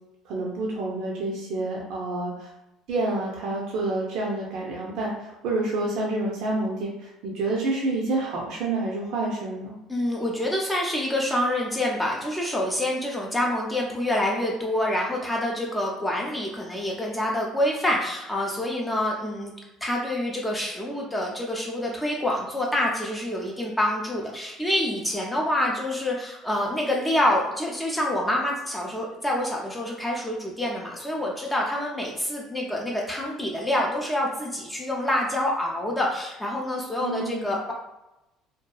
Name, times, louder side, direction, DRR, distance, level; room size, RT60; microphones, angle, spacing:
voice 1, 0.2-2.5 2.9-9.8 37.0-37.5, right 2 dB, 70° right, -3 dB, 0.5 m, -28 dB
voice 2, 9.9-19.5 19.8-37.7, left 1 dB, 10° left, -2 dB, 0.4 m, -27 dB
2.7 x 2.3 x 2.2 m, 0.95 s
supercardioid pair, 105°, 0 cm